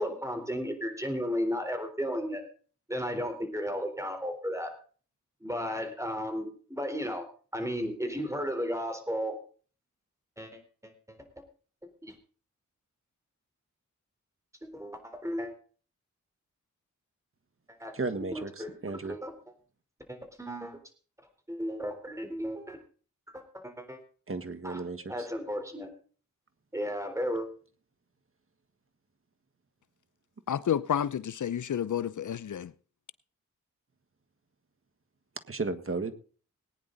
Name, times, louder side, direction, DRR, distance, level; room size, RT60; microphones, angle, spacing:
voice 1, 0.0-2.4 2.9-4.7 5.4-7.3 7.5-9.4 10.4-11.2 12.0-12.1 14.6-15.5 17.8-17.9 18.3-19.3 20.1-20.8 21.5-22.8 23.3-24.0 24.6-24.8 25.1-25.9 26.7-27.5, equal, 10° right, 3.9 m, -34 dB
voice 2, 17.9-19.2 24.3-25.3 35.5-36.1, right 3 dB, 45° right, 1.6 m, -34 dB
voice 3, 30.5-32.7, left 9 dB, 70° left, 0.6 m, -30 dB
19.5 x 9.8 x 4.0 m
cardioid pair, 65°, 31 cm